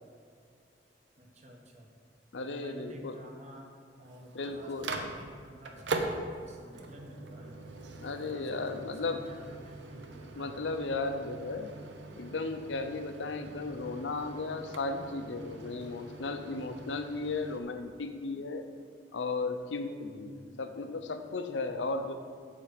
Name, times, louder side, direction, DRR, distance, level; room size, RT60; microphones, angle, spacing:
voice 1, 1.2-1.9 2.4-3.7 4.0-6.1 6.5-7.6 7.9-10.6 11.2-11.4 20.3-20.6, equal, 40° right, 1 dB, 1.1 m, -51 dB
voice 2, 2.3-3.2 4.3-4.9 8.0-9.2 10.3-11.7 12.2-18.7 19.1-22.1, left 3 dB, 85° left, 8 dB, 0.6 m, -35 dB
Microwave oven, 4.0-17.6, right 2 dB, 85° right, 0.8 m, -42 dB
7.2 x 5.0 x 6.6 m, 2.1 s
head